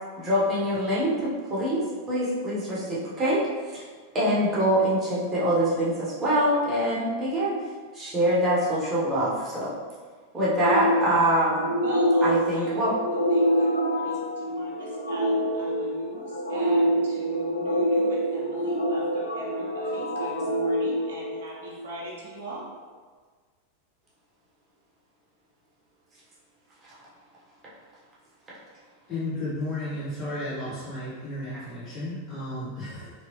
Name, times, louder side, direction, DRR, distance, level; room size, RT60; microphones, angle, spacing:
voice 1, 0.2-3.8 4.1-7.6 7.9-9.7 10.3-11.7 12.2-12.9 31.5-31.6, right 1 dB, 25° right, -7 dB, 1.1 m, -24 dB
sound 1, 10.5-21.9, equal, 90° right, 0.5 m, -26 dB
voice 2, 11.8-12.9 13.3-22.7, right 2 dB, 60° right, -4 dB, 0.8 m, -40 dB
voice 3, 29.1-33.1, left 1 dB, 25° left, -11 dB, 1.0 m, -33 dB
3.3 x 2.9 x 3.0 m, 1.5 s
figure-of-eight pair, 90°, 0 cm